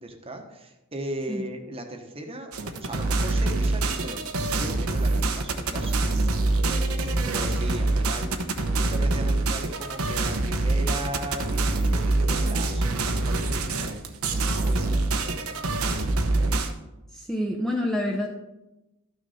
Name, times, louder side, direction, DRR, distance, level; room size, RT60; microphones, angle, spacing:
voice 1, 0.0-2.5 2.8-14.0 14.4-16.1, right 1 dB, 25° right, 4 dB, 1.1 m, -38 dB
sound 1, 2.5-16.7, right 2 dB, 75° right, 1.0 m, -25 dB
voice 2, 17.1-18.3, left 1 dB, ahead, 0 dB, 0.7 m, -27 dB
13.0 x 6.3 x 4.2 m, 0.98 s
head